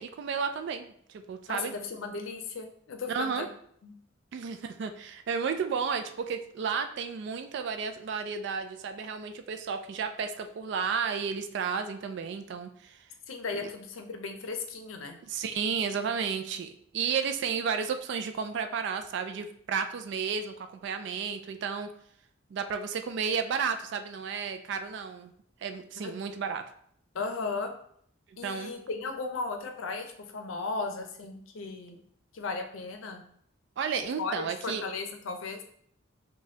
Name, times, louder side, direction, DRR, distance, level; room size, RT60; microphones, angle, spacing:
voice 1, 0.0-1.7 3.1-3.5 4.3-13.0 15.2-21.9 22.5-25.3 25.6-26.6 28.3-28.7 33.8-34.8, right 6 dB, 60° right, 8 dB, 0.3 m, -32 dB
voice 2, 1.5-3.5 3.8-3.9 13.3-15.2 26.0-26.1 27.1-27.7 28.4-32.0 32.3-33.2 34.2-35.6, left 4 dB, 85° left, 5 dB, 0.5 m, -36 dB
4.9 x 2.2 x 2.7 m, 0.65 s
head